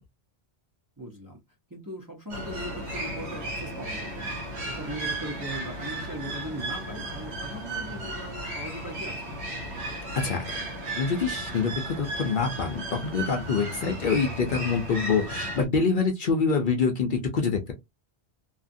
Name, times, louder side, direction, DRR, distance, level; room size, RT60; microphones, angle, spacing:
voice 1, 1.0-1.4 1.7-4.3 4.6-9.2, right 1 dB, 20° right, 0.6 m, -39 dB
sound 1, 2.3-15.7, right 1 dB, 75° right, 1.2 m, -35 dB
voice 2, 11.0-17.7, left 5 dB, 55° left, 0.7 m, -26 dB
2.7 x 2.4 x 2.5 m
omnidirectional pair, 1.1 m